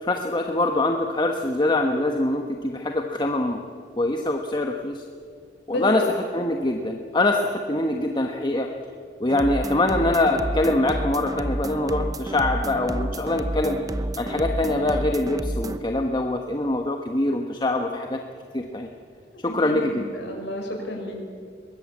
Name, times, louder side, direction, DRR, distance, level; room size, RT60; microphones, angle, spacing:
voice 1, 0.0-3.7 4.0-5.0 5.7-6.0 6.3-8.7 9.2-13.8 14.2-18.2 18.5-18.9 19.4-20.0, left 2 dB, 25° left, 3 dB, 1.3 m, -24 dB
voice 2, 5.7-6.0 19.4-21.1, left 1 dB, 75° left, 1 dB, 6.1 m, -31 dB
sound 1, 9.3-15.8, right 1 dB, 20° right, 0.8 m, -30 dB
23.0 x 20.5 x 8.6 m, 2.2 s
head